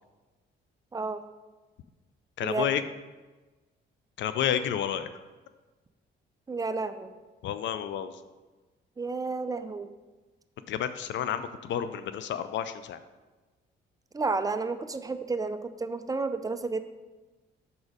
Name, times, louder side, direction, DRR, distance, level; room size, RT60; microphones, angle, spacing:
voice 1, 0.9-1.2 2.4-2.7 6.5-7.1 9.0-9.9 14.1-16.8, right 3 dB, 20° right, 10 dB, 0.4 m, -31 dB
voice 2, 2.4-2.8 4.2-5.1 7.4-8.2 10.7-13.0, left 9 dB, 70° left, 11 dB, 0.4 m, -30 dB
6.1 x 4.1 x 4.7 m, 1.2 s
cardioid pair, 90°, 20 cm